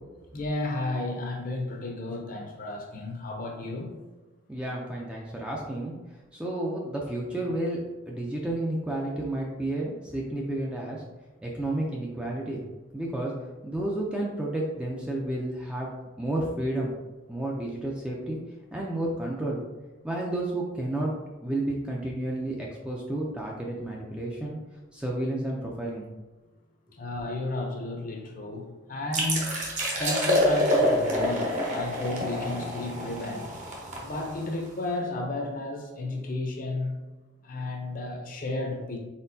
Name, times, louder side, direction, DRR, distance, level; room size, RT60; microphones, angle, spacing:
voice 1, 0.3-4.0 4.6-4.7 26.9-29.5 30.0-33.5 34.0-37.0 37.4-39.0, left 2 dB, 40° left, 1 dB, 0.6 m, -32 dB
voice 2, 4.5-5.9 6.3-11.0 11.4-12.6 12.9-13.3 13.6-15.9 16.2-16.9 17.3-18.4 18.7-19.6 20.0-21.1 21.4-24.6 24.9-26.1, right 1 dB, 5° right, -3 dB, 0.4 m, -31 dB
sound 1, 29.1-34.7, equal, 35° right, 0.8 m, -27 dB
4.3 x 3.9 x 2.7 m, 1.1 s
head